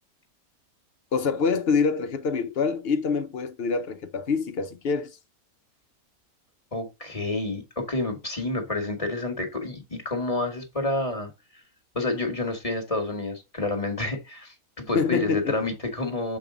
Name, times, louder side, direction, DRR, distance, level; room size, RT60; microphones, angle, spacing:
voice 1, 1.1-5.1 14.9-15.6, left 5 dB, 50° left, 0.8 m, -25 dB
voice 2, 6.7-11.3 11.9-16.4, left 2 dB, 25° left, 1.3 m, -29 dB
7.0 x 4.8 x 3.6 m
omnidirectional pair, 1.5 m